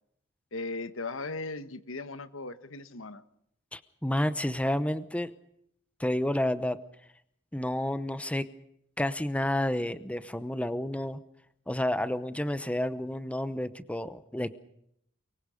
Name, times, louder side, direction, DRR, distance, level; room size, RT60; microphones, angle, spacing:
voice 1, 0.5-3.2, left 3 dB, 80° left, 11 dB, 1.3 m, -37 dB
voice 2, 3.7-5.3 6.0-6.8 7.5-8.4 9.0-11.2 11.7-14.5, left 1 dB, 5° left, 13 dB, 0.8 m, -30 dB
23.5 x 23.0 x 5.1 m, 0.72 s
head